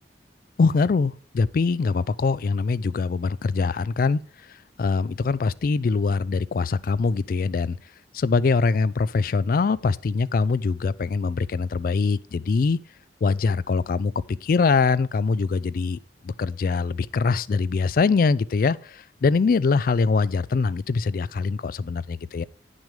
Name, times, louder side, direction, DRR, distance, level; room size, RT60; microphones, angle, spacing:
voice 1, 0.6-4.2 4.5-7.8 8.1-12.8 13.2-14.1 14.4-22.4, left 4 dB, 50° left, 0.3 m, -23 dB
8.8 x 6.3 x 4.9 m
head